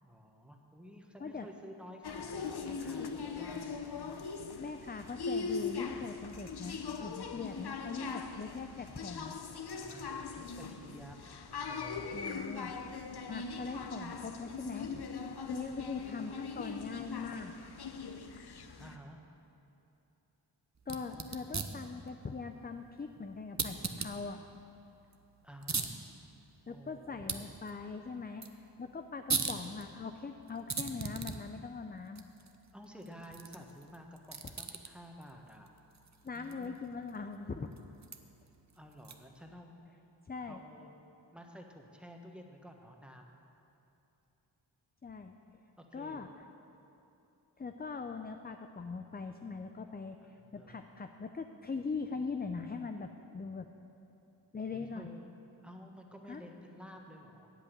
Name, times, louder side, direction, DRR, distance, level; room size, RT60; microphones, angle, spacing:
voice 1, 0.0-4.2 9.4-12.1 18.8-19.2 25.4-26.0 26.7-27.4 32.7-35.7 36.3-36.7 38.7-39.8 40.5-40.9 41.3-43.4 45.8-46.3 50.2-50.9 54.7-55.2 55.6-57.5, equal, ahead, 2 dB, 1.3 m, -52 dB
sound 1, 2.0-19.0, left 5 dB, 60° left, 0.8 m, -41 dB
voice 2, 4.6-9.4 12.1-12.7 13.3-14.9 15.4-17.5 20.9-24.4 26.7-28.4 28.8-32.2 36.2-37.7 40.3-40.6 45.0-45.3 45.9-46.3 47.6-53.7 54.5-55.1 56.3-56.4, left 4 dB, 20° left, 6 dB, 0.5 m, -41 dB
sound 2, 20.8-39.5, right 4 dB, 40° right, 0.8 m, -42 dB
8.3 x 8.0 x 8.7 m, 2.8 s
cardioid pair, 50°, 45 cm